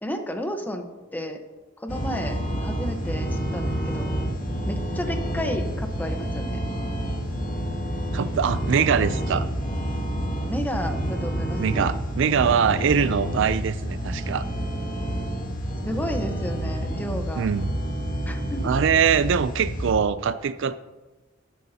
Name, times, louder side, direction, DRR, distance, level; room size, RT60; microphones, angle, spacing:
voice 1, 0.0-0.9 1.1-1.4 1.8-4.1 4.7-6.6 10.5-11.9 15.8-17.5 18.3-18.7, equal, 10° left, 5 dB, 1.0 m, -32 dB
sound 1, 1.9-19.9, equal, 40° left, 2.1 m, -29 dB
voice 2, 8.1-9.5 11.6-14.4 17.4-17.7 18.6-20.8, right 7 dB, 65° right, 15 dB, 0.4 m, -23 dB
14.0 x 11.0 x 2.8 m, 1.2 s
head